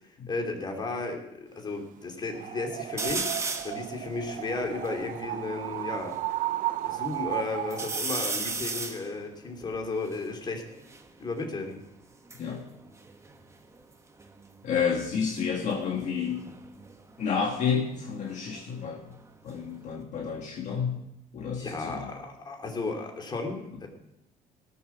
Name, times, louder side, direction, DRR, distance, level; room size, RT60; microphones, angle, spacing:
voice 1, 0.3-3.3 3.6-6.1 6.8-10.6 11.2-11.8 21.6-23.9, left 3 dB, 30° left, 2 dB, 2.8 m, -34 dB
sound 1, 2.3-8.1, right 14 dB, 65° right, 0.5 m, -34 dB
sound 2, 3.0-3.8 4.4-4.5 4.6-6.2 6.7-7.3 7.7-11.1 12.0-13.9 14.2-14.7 16.2-18.9 19.2-20.0, right 3 dB, 20° right, 1.3 m, -36 dB
voice 2, 14.6-16.5 17.2-19.0 19.4-21.0 21.3-22.1, left 6 dB, 55° left, 0 dB, 1.8 m, -30 dB
18.0 x 7.2 x 6.0 m, 0.83 s
cardioid pair, 120°, 15 cm